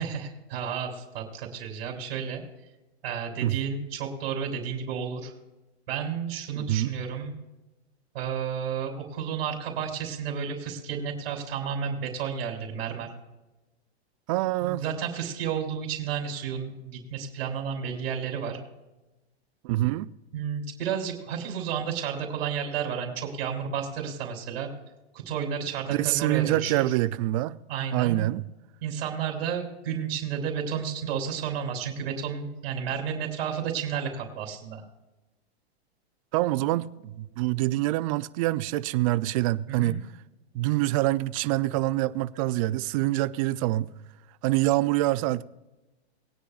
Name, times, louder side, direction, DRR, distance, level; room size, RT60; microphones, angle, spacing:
voice 1, 0.0-2.4 3.0-5.3 5.9-7.3 8.1-13.1 14.6-18.6 20.3-24.7 25.1-27.0 27.7-28.3 28.8-34.8 39.7-40.0, right 7 dB, 55° right, 3.2 m, -32 dB
voice 2, 6.6-6.9 14.3-14.8 19.6-20.1 25.9-27.6 27.9-28.4 36.3-40.0 40.5-43.9 44.4-45.4, right 17 dB, 35° right, 0.4 m, -25 dB
21.0 x 10.0 x 2.4 m
hypercardioid pair, 135°, 33 cm